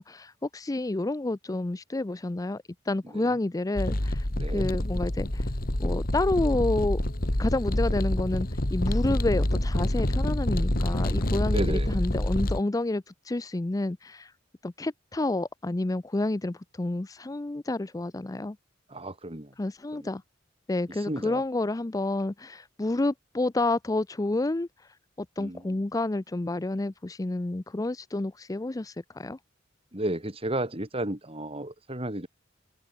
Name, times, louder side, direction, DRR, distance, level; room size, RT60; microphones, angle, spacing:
voice 1, 0.0-5.5 5.8-7.0 7.4-14.3 14.6-18.6 19.6-20.2 20.7-24.7 25.2-29.4, left 2 dB, 20° left, 0.5 m, -29 dB
sound 1, 3.8-12.6, left 1 dB, 50° left, 2.4 m, -27 dB
voice 2, 4.4-4.7 11.5-12.0 18.9-19.5 19.9-20.1 21.1-21.4 25.4-25.8 29.9-32.3, right 1 dB, 30° right, 4.4 m, -33 dB
head